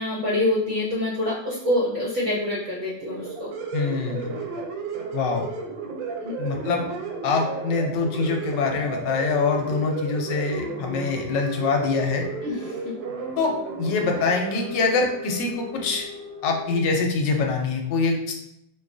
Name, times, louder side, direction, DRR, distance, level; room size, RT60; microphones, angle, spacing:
voice 1, 0.0-3.5 6.2-6.3 12.4-12.8, left 1 dB, 60° right, -5 dB, 0.8 m, -26 dB
sound 1, 3.0-16.8, right 5 dB, 85° right, 1.3 m, -34 dB
voice 2, 3.7-4.3 5.1-5.5 6.4-6.9 7.2-12.2 13.4-16.1 16.4-18.3, left 4 dB, 75° left, 2 dB, 1.2 m, -24 dB
4.5 x 2.3 x 2.5 m, 0.79 s
omnidirectional pair, 2.0 m